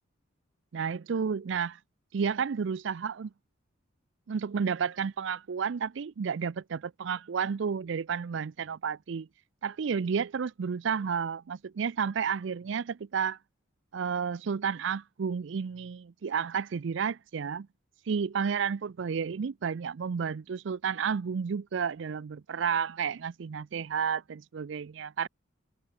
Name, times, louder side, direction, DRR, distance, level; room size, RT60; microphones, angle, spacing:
voice 1, 0.7-1.8 2.1-3.3 4.3-9.3 9.6-13.4 13.9-17.7 18.1-25.3, right 6 dB, 65° right, 0.4 m, -31 dB
head